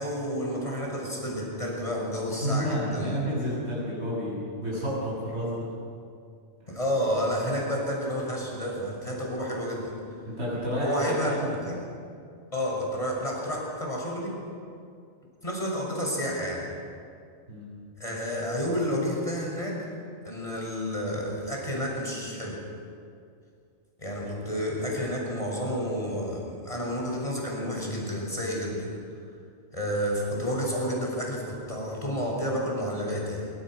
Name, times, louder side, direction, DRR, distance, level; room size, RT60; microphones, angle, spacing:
voice 1, 0.0-3.2 6.7-9.9 10.8-11.7 12.5-14.3 15.4-16.6 18.0-19.9 20.2-22.6 24.0-28.9 29.7-33.5, equal, 30° left, -2 dB, 6.8 m, -30 dB
voice 2, 2.4-5.7 10.3-11.8 17.5-17.8 24.2-24.3, equal, 60° right, -6 dB, 7.3 m, -30 dB
25.5 x 24.5 x 6.6 m, 2.3 s
omnidirectional pair, 1.2 m